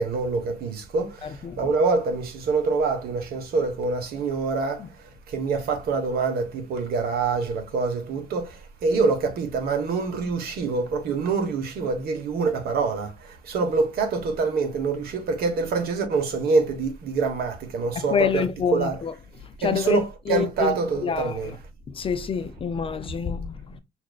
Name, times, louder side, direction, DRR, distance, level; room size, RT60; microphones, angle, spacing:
voice 1, 0.0-4.9 5.3-18.4 18.7-19.0 19.6-21.5, right 4 dB, 65° right, 1.1 m, -25 dB
voice 2, 1.2-1.7 4.8-4.9 17.9-19.1 19.4-20.8 21.0-21.6 21.9-23.8, left 6 dB, 35° left, 0.4 m, -27 dB
5.8 x 2.6 x 2.3 m
cardioid pair, 110°, 17 cm